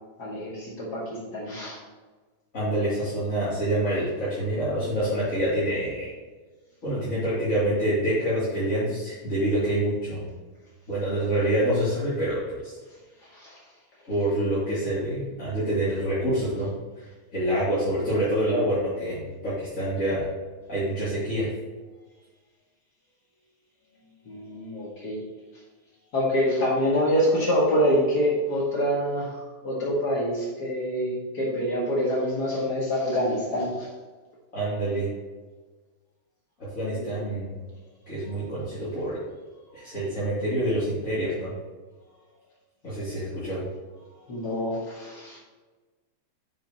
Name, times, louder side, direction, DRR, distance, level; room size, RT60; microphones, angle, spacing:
voice 1, 0.2-1.8 13.3-13.6 24.2-25.2 26.1-29.3 29.6-33.9 44.3-45.4, equal, 40° left, -6 dB, 1.5 m, -26 dB
voice 2, 2.5-6.1 6.8-10.2 10.9-12.7 14.1-16.7 17.3-20.3 20.7-21.5 34.5-35.1 36.7-37.5 38.1-39.2 39.7-41.5 42.8-43.6, right 1 dB, 20° left, -13 dB, 2.5 m, -26 dB
8.2 x 8.0 x 3.0 m, 1.3 s
omnidirectional pair, 4.9 m